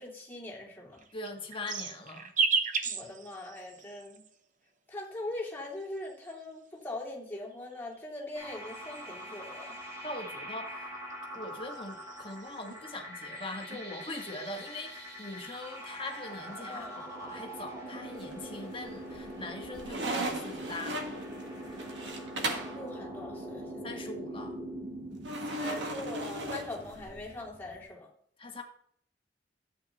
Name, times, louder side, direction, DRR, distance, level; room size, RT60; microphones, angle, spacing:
voice 1, 0.0-1.0 2.8-4.2 4.9-9.8 16.7-17.1 22.5-23.9 25.5-28.1, left 1 dB, 10° left, -4 dB, 2.7 m, -41 dB
sound 1, 0.9-4.4 5.3-6.7 7.5-9.4 10.8-12.9 13.3-13.8 14.1-15.2 15.5-16.2, right 5 dB, 45° right, 0.8 m, -36 dB
voice 2, 1.1-2.3 10.0-10.9 11.3-21.2 23.8-24.6 28.4-28.6, left 2 dB, 30° left, 2 dB, 1.6 m, -42 dB
sound 2, 8.3-27.8, equal, 20° right, 3.1 m, -43 dB
sound 3, 18.1-18.7 19.1-22.8 25.2-27.3, right 2 dB, 75° right, 1.6 m, -36 dB
13.0 x 8.6 x 3.0 m, 0.64 s
head